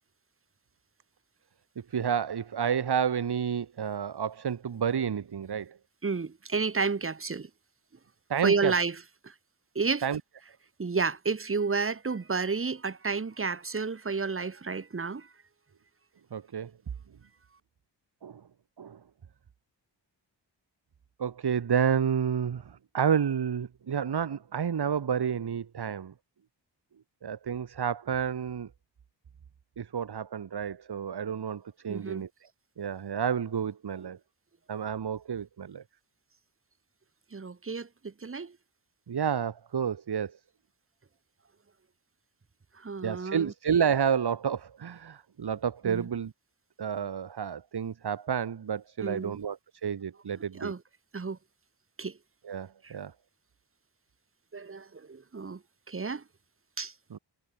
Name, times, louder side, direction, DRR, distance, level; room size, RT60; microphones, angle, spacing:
voice 1, 1.9-5.8 8.3-8.7 10.0-10.2 16.3-16.7 18.2-18.4 18.8-19.0 21.2-26.1 27.2-28.7 29.8-32.3 32.8-34.2 34.7-35.8 39.1-40.4 43.0-46.3 46.8-50.7 52.4-53.1 57.1-57.2, right 7 dB, 60° right, 2.3 m, -30 dB
voice 2, 6.0-7.5 8.4-9.0 9.2-9.3 9.8-10.0 10.8-15.3 31.9-32.2 37.3-38.6 42.8-43.5 45.8-46.1 49.0-49.4 50.5-50.8 51.1-51.4 52.0-52.2 52.8-52.9 54.5-55.6 55.9-56.2 56.8-56.9, right 4 dB, 30° right, 1.8 m, -31 dB
wide cardioid pair, 165°, 44 cm